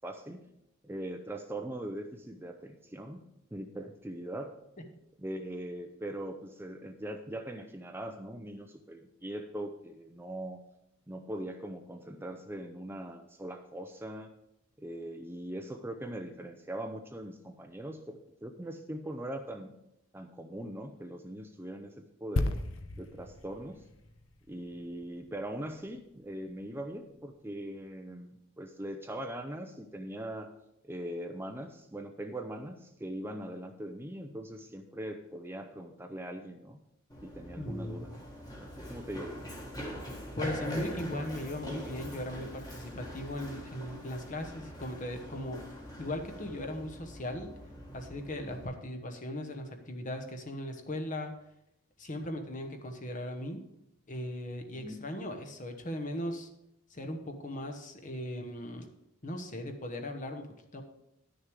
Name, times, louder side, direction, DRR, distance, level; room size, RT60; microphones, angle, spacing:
voice 1, 0.0-0.4 0.8-3.2 3.5-4.5 5.2-10.6 11.1-14.3 14.8-19.7 20.1-22.6 23.0-23.8 24.5-30.5 30.8-36.8 37.2-38.1 38.6-39.3 54.7-55.0, right 1 dB, 10° right, 5 dB, 0.5 m, -41 dB
sound 1, 22.4-26.0 26.3-26.5, left 2 dB, 65° left, 0.7 m, -36 dB
Run, 37.1-48.6, equal, 20° left, 1.6 m, -43 dB
voice 2, 37.6-38.1 40.4-45.6 46.0-47.5 47.9-51.3 52.0-53.6 54.1-56.5 56.9-58.9 59.2-60.5 60.7-60.8, left 1 dB, 35° left, 4 dB, 1.1 m, -38 dB
10.5 x 6.6 x 4.8 m, 0.83 s
head